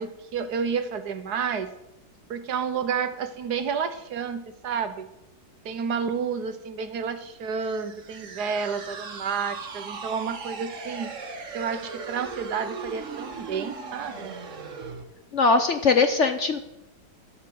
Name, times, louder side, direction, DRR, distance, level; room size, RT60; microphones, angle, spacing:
voice 1, 0.0-1.7 2.3-5.1 5.6-11.1 11.5-14.4, right 6 dB, 65° right, 11 dB, 1.4 m, -30 dB
sound 1, 7.6-15.0, right 5 dB, 45° right, 1.6 m, -38 dB
voice 2, 15.3-16.6, left 4 dB, 50° left, 8 dB, 0.9 m, -20 dB
12.5 x 8.5 x 7.7 m, 0.91 s
omnidirectional pair, 2.0 m